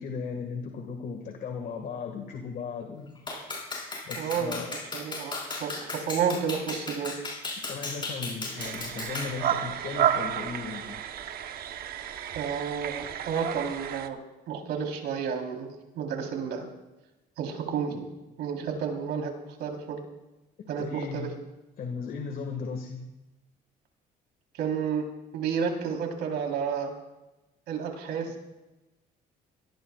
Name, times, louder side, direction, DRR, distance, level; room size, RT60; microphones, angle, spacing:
voice 1, 0.0-3.2 4.1-4.7 7.6-11.0 20.8-21.3 21.8-23.0, left 5 dB, 60° left, 4 dB, 1.9 m, -36 dB
Clapping, 3.3-9.4, left 3 dB, 30° left, 6.0 m, -36 dB
voice 2, 4.2-4.6 4.9-7.2 12.3-14.2 14.5-16.6 17.4-18.0 18.4-19.3 19.6-20.0 20.7-21.3 24.5-25.1 25.3-26.9 27.7-28.4, right 7 dB, 80° right, 2 dB, 3.8 m, -31 dB
sound 1, 8.6-14.1, right 10 dB, 65° right, 1.0 m, -31 dB
25.0 x 18.5 x 2.4 m, 1.0 s
cardioid pair, 110°, 17 cm